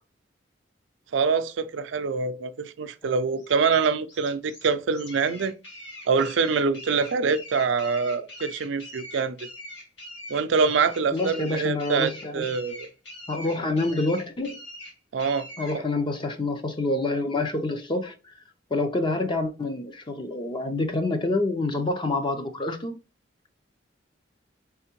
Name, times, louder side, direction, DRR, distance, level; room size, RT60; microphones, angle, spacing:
voice 1, 1.1-5.5 6.1-9.4 10.3-12.9 15.1-15.5, right 5 dB, 80° right, 0.4 m, -25 dB
sound 1, 3.4-15.8, left 1 dB, 75° left, 1.7 m, -43 dB
voice 2, 11.1-12.5 13.3-14.6 15.6-18.3 18.7-23.0, left 2 dB, 25° left, 0.5 m, -27 dB
4.3 x 3.5 x 2.9 m
head